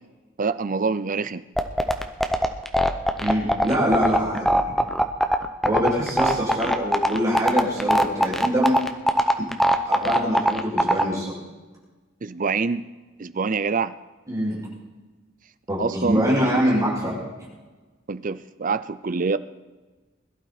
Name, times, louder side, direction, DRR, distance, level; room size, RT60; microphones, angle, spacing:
voice 1, 0.4-1.4 12.2-12.9 13.2-13.9 15.8-16.3 18.1-19.4, right 4 dB, 40° right, 14 dB, 0.5 m, -25 dB
sound 1, 1.6-11.0, equal, ahead, 0.8 m, -19 dB
voice 2, 3.2-4.5 5.6-8.8 9.4-9.5 9.9-11.3 14.3-14.6 15.7-17.2, equal, 15° right, -6 dB, 5.8 m, -24 dB
21.5 x 12.0 x 4.1 m, 1.2 s
head